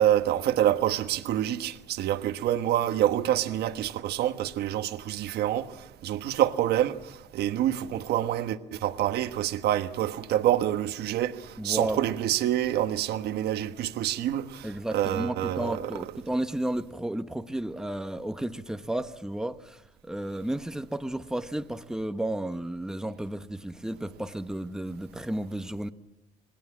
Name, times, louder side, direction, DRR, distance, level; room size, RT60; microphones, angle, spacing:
voice 1, 0.0-5.7 6.0-7.0 7.3-15.8, right 12 dB, 75° right, 1.3 m, -27 dB
voice 2, 11.6-12.0 14.6-25.9, right 1 dB, 5° right, 1.1 m, -33 dB
27.5 x 20.5 x 7.4 m
cardioid pair, 110°, 17 cm